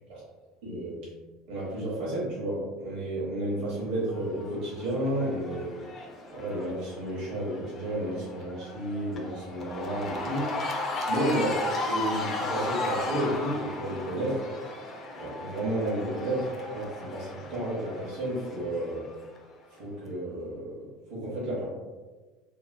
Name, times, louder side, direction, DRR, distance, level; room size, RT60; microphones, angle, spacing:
voice 1, 0.6-1.0 1.5-5.7 6.3-10.5 11.0-14.4 15.2-19.0 19.7-21.7, right 1 dB, 55° right, -7 dB, 0.9 m, -32 dB
Cheering / Crowd, 4.1-19.4, left 2 dB, 25° left, 0.3 m, -36 dB
2.7 x 2.1 x 2.5 m, 1.3 s
cardioid pair, 160°, 0 cm